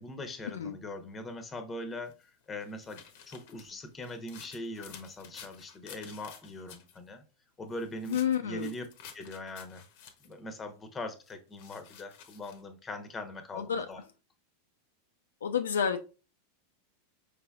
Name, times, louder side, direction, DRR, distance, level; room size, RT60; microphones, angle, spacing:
voice 1, 0.0-7.2 7.6-8.8 9.1-9.9 10.2-14.0, left 1 dB, 20° left, 0.9 m, -41 dB
sound 1, 2.1-7.0 7.7-10.4 11.3-12.6, left 8 dB, 60° left, 0.7 m, -52 dB
voice 2, 8.1-8.7 13.5-13.9 15.4-16.0, left 8 dB, 80° left, 0.4 m, -29 dB
5.0 x 3.3 x 2.3 m
hypercardioid pair, 95°, 0 cm